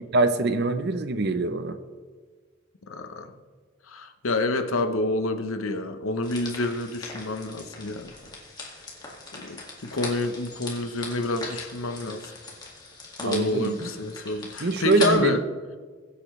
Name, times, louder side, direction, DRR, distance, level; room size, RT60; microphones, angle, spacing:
voice 1, 0.1-1.8 13.2-13.9 14.6-15.4, right 3 dB, 55° right, 10 dB, 0.7 m, -24 dB
voice 2, 2.9-3.3 3.9-8.1 9.3-12.2 13.2-15.4, left 2 dB, 85° left, 7 dB, 0.9 m, -28 dB
sound 1, 6.2-15.1, left 3 dB, 20° left, 2.0 m, -39 dB
21.5 x 8.3 x 3.2 m, 1.5 s
head